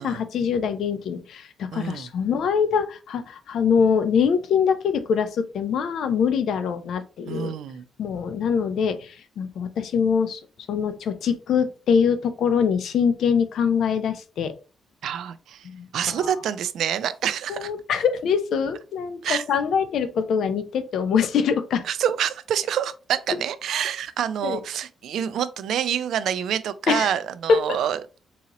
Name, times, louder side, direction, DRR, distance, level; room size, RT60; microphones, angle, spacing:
voice 1, 0.0-7.5 8.0-10.4 10.7-14.5 15.6-16.3 17.5-21.8 24.4-24.6 26.9-27.1 27.5-27.6, left 6 dB, 65° left, 0.4 m, -23 dB
voice 2, 1.7-2.1 7.3-7.9 15.0-15.7 15.9-17.7 19.2-19.4 21.8-28.0, right 9 dB, 70° right, 0.3 m, -27 dB
3.8 x 2.8 x 2.9 m
wide cardioid pair, 175°, 0 cm